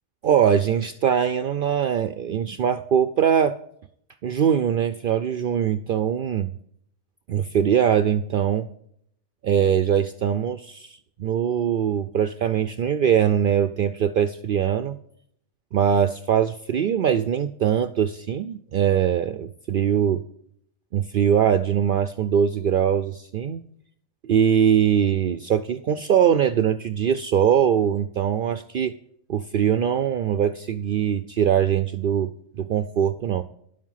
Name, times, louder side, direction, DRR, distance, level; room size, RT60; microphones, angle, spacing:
voice 1, 0.2-3.5 4.2-6.5 7.3-8.7 9.4-15.0 15.7-20.2 20.9-23.6 24.2-28.9 29.3-33.4, right 8 dB, 60° right, 11 dB, 0.6 m, -22 dB
11.0 x 7.3 x 5.6 m, 0.69 s
omnidirectional pair, 1.2 m